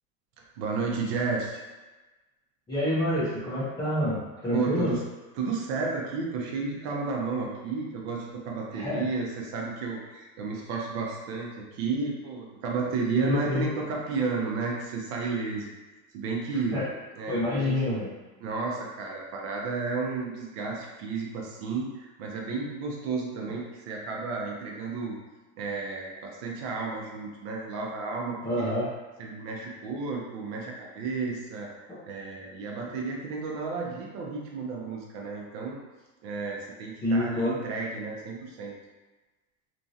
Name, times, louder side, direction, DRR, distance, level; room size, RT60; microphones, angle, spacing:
voice 1, 0.6-1.6 4.5-5.0 5.4-15.7 16.1-16.8 17.2-17.7 18.4-25.2 25.6-28.8 29.2-35.8 36.2-38.7, right 4 dB, 50° right, -1 dB, 0.6 m, -32 dB
voice 2, 2.7-4.9 8.7-9.1 13.1-13.6 16.7-16.9 17.3-18.1 28.4-28.9 31.9-32.0 37.0-37.6, left 1 dB, 10° left, -11 dB, 0.4 m, -27 dB
3.0 x 2.5 x 2.6 m, 1.2 s
supercardioid pair, 155°, 42 cm